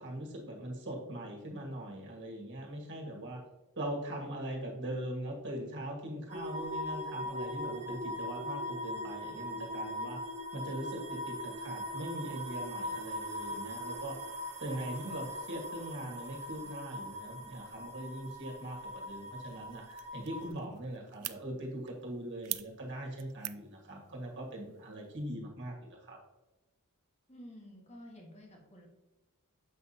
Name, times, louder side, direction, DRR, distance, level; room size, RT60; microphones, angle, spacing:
voice 1, 0.0-3.4 3.8-10.2 10.5-14.1 14.6-26.2, right 1 dB, 55° right, 0 dB, 1.8 m, -41 dB
sound 1, 6.3-20.5, left 1 dB, 30° right, 1.4 m, -40 dB
sound 2, 19.5-25.4, right 18 dB, 85° right, 0.4 m, -46 dB
voice 2, 27.3-28.9, equal, 30° left, 0 dB, 1.6 m, -51 dB
7.6 x 5.8 x 2.8 m, 1.0 s
head